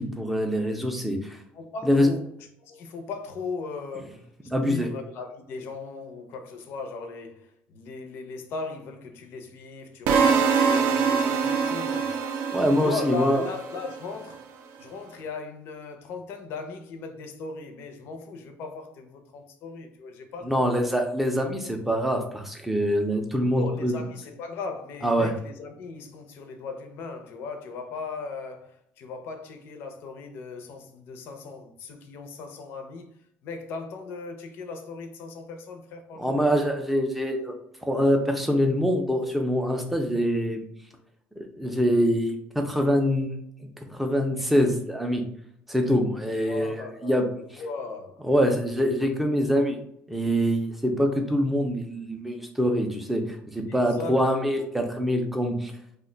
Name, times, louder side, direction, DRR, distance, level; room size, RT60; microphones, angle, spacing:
voice 1, 0.0-1.4 1.8-2.1 4.5-4.9 12.5-13.4 20.4-24.0 25.0-25.3 36.2-37.5 37.8-40.6 41.4-43.3 43.8-45.2 45.7-47.3 47.5-47.6 48.2-49.8 50.1-55.7, equal, 5° right, 0.4 m, -24 dB
voice 2, 1.5-2.3 2.6-4.3 4.6-12.2 12.8-14.5 14.8-20.9 23.5-33.1 33.4-36.4 46.4-47.2 47.6-48.3 53.7-54.6 55.0-55.1, left 4 dB, 65° left, 0.5 m, -38 dB
sound 1, 10.1-14.1, right 6 dB, 70° right, 0.4 m, -24 dB
2.4 x 2.1 x 3.8 m
cardioid pair, 155°, 4 cm